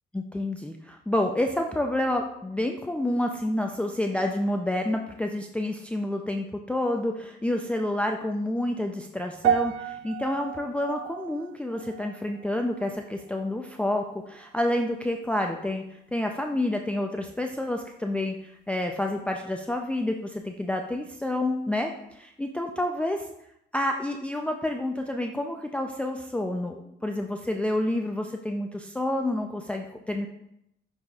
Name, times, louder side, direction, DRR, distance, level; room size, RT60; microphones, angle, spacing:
voice 1, 0.1-15.8 16.1-23.3 23.7-30.3, left 1 dB, 5° left, 3 dB, 0.4 m, -29 dB
sound 1, 9.4-13.8 14.1-14.5 15.1-15.2, right 9 dB, 80° right, 0.4 m, -32 dB
10.0 x 4.1 x 2.4 m, 0.80 s
cardioid pair, 90°, 20 cm